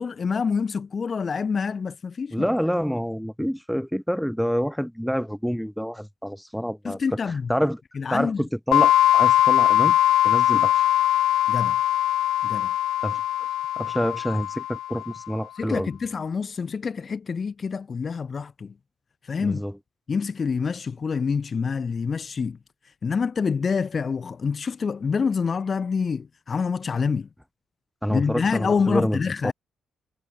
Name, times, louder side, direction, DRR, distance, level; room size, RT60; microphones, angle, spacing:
voice 1, 0.0-2.5 6.8-7.5 8.0-8.5 11.5-11.8 12.4-12.7 15.6-18.7 19.3-19.6 20.1-22.6 23.0-27.3 28.1-29.5, left 5 dB, 30° left, 1.1 m, -26 dB
voice 2, 2.3-7.2 7.5-7.8 8.1-10.0 10.2-10.9 13.0-13.2 13.8-15.9 19.4-19.7 28.0-29.5, equal, ahead, 0.6 m, -27 dB
sound 1, 8.7-15.2, left 13 dB, 85° left, 1.1 m, -21 dB
cardioid pair, 145°, 0 cm